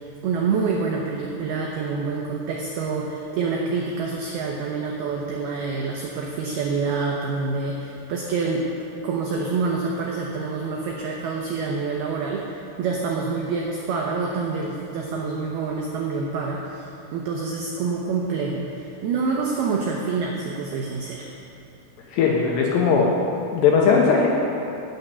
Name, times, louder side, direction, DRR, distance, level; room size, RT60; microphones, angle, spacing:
voice 1, 0.2-8.7 9.0-21.3, right 4 dB, 85° right, -1 dB, 2.2 m, -27 dB
voice 2, 22.1-23.1 23.5-24.3, left 5 dB, 75° left, -1 dB, 2.7 m, -18 dB
9.1 x 8.4 x 8.0 m, 2.7 s
omnidirectional pair, 5.7 m